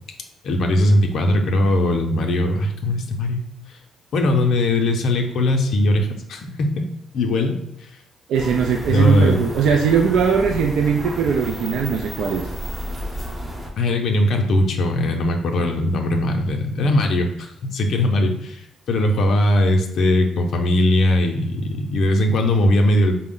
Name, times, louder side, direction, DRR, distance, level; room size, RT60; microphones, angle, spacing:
voice 1, 0.4-3.5 4.1-6.9 7.1-7.6 8.9-9.4 13.8-23.1, left 1 dB, 70° left, 3 dB, 0.5 m, -19 dB
sound 1, 8.3-13.7, equal, 25° right, 0.8 m, -31 dB
voice 2, 8.3-12.4, right 6 dB, 80° right, 2 dB, 0.3 m, -20 dB
4.3 x 2.0 x 3.7 m, 0.78 s
cardioid pair, 90°, 0 cm